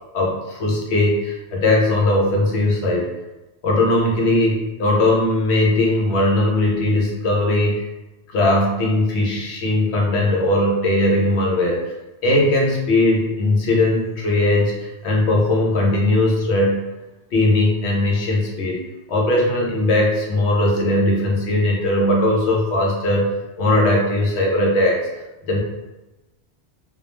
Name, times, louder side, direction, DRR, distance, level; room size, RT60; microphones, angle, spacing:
voice 1, 0.1-3.1 3.6-7.9 8.3-11.9 12.2-16.9 17.3-18.8 19.1-23.3 23.6-25.1 25.5-25.6, left 1 dB, 85° left, -2 dB, 0.8 m, -19 dB
2.3 x 2.0 x 2.9 m, 1.0 s
omnidirectional pair, 1.1 m